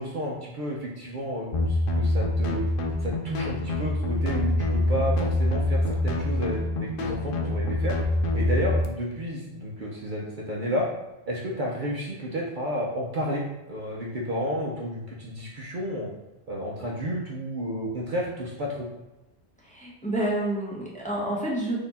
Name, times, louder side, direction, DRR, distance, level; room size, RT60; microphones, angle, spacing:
voice 1, 0.0-2.7 3.0-8.0 8.3-10.9 11.3-16.1 16.5-18.9, equal, 50° right, -3 dB, 0.7 m, -31 dB
sound 1, 1.5-8.8, left 1 dB, 60° left, 0.7 m, -25 dB
voice 2, 19.6-21.8, right 1 dB, 10° left, -5 dB, 0.8 m, -29 dB
4.2 x 2.8 x 4.0 m, 1.0 s
omnidirectional pair, 1.1 m